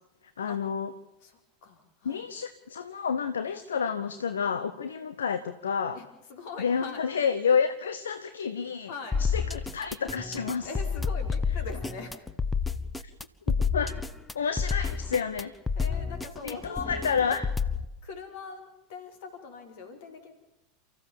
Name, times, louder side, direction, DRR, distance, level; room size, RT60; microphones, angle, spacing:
voice 1, 0.4-0.9 2.0-6.0 6.6-8.9 9.2-10.7 13.5-14.0 14.3-15.5 16.4-17.5, left 6 dB, 70° left, 12 dB, 1.0 m, -29 dB
voice 2, 1.2-2.3 5.9-7.0 8.9-9.2 10.5-12.3 14.6-14.8 15.7-17.3 18.0-20.3, left 4 dB, 55° left, 5 dB, 4.6 m, -42 dB
sound 1, 9.1-17.8, left 5 dB, 10° left, 1.1 m, -30 dB
29.5 x 15.0 x 7.3 m, 0.95 s
figure-of-eight pair, 85°, 0 cm